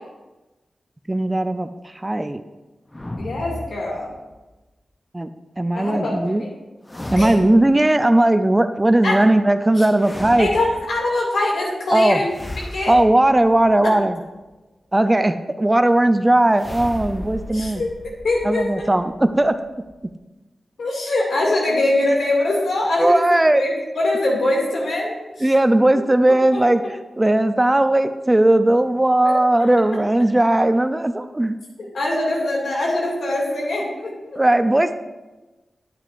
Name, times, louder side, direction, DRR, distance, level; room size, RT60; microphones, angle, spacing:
voice 1, 1.1-1.7 2.0-2.4 5.1-5.3 5.6-6.4 7.1-10.5 11.9-12.2 12.9-14.2 14.9-17.8 18.4-19.5 23.0-23.6 25.4-26.8 27.2-31.5 34.4-34.9, right 1 dB, 20° right, 10 dB, 0.5 m, -17 dB
sound 1, 2.9-4.4 6.8-7.9 9.9-11.1 12.3-14.1 16.5-20.1, left 1 dB, 25° left, 0.7 m, -35 dB
voice 2, 3.2-4.1 5.7-6.5 7.1-7.3 9.0-9.2 9.7-9.9 10.4-12.3 12.7-12.9 17.5-17.9 18.2-18.9 20.8-23.3 23.5-25.5 26.5-26.6 29.2-29.6 31.9-34.4, left 2 dB, 85° left, -2 dB, 2.3 m, -23 dB
9.4 x 9.1 x 2.6 m, 1.1 s
cardioid pair, 45°, 0 cm